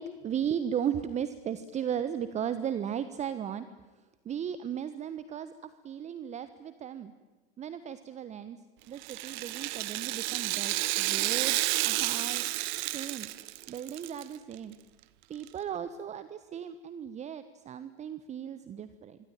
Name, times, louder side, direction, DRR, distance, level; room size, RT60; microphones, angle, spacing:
voice 1, 0.0-3.7 4.2-7.1 7.6-8.6 8.9-13.3 13.7-14.8 15.3-19.2, right 9 dB, 25° right, 13 dB, 1.2 m, -36 dB
Rattle (instrument), 9.0-14.2 14.5-14.6 15.5-15.6, right 19 dB, 50° right, 1.3 m, -31 dB
25.5 x 25.0 x 9.0 m, 1.2 s
figure-of-eight pair, 95°, 30 cm